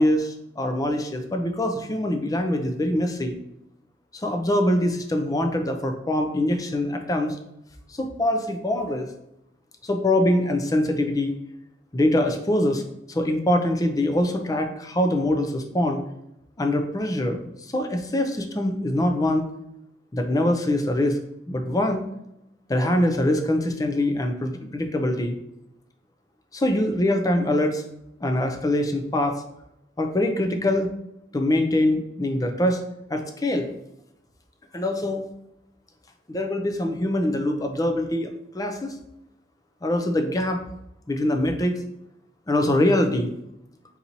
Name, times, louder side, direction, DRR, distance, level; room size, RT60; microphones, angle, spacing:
voice 1, 0.0-3.4 4.2-7.4 8.0-9.1 9.8-11.3 11.9-12.8 13.1-16.0 16.6-17.5 17.7-19.5 20.1-21.2 21.5-22.0 22.7-25.4 26.5-27.8 28.2-29.4 30.0-30.9 31.3-32.8 33.1-33.7 34.7-35.3 36.3-38.3 38.5-38.9 39.8-40.6 41.1-41.7 42.5-43.3, left 1 dB, 20° left, 5 dB, 0.5 m, -23 dB
4.1 x 4.0 x 2.9 m, 0.83 s
head